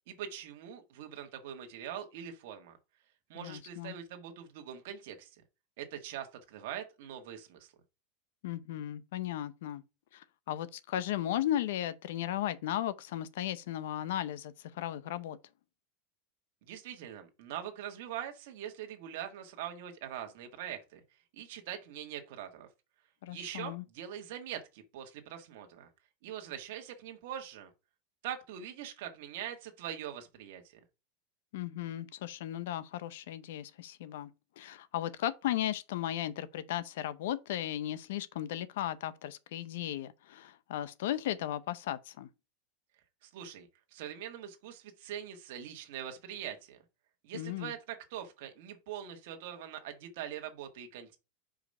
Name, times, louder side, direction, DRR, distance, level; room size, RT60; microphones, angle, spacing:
voice 1, 0.1-2.7 3.3-5.4 5.8-7.7 16.6-21.0 21.3-22.7 23.3-25.9 26.2-27.7 28.2-30.8 43.2-46.8 47.2-51.2, right 10 dB, 60° right, 1.5 m, -43 dB
voice 2, 3.4-3.9 8.4-9.8 10.1-15.4 23.2-23.8 31.5-34.3 34.6-42.3 47.3-47.7, left 12 dB, 75° left, 0.6 m, -36 dB
5.0 x 5.0 x 5.3 m
supercardioid pair, 170°, 0 cm